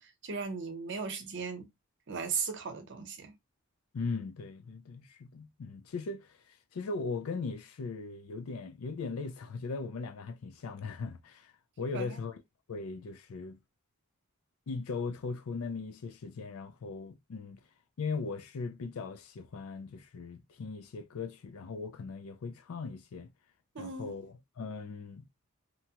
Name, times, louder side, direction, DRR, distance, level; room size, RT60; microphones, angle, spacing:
voice 1, 0.0-1.7 2.1-3.3 11.9-12.2 23.7-24.1, right 5 dB, 60° right, 0.8 m, -37 dB
voice 2, 3.9-12.4 12.7-13.6 14.7-17.6 18.0-23.3 23.8-25.3, left 4 dB, 80° left, 0.4 m, -39 dB
2.8 x 2.2 x 2.8 m
head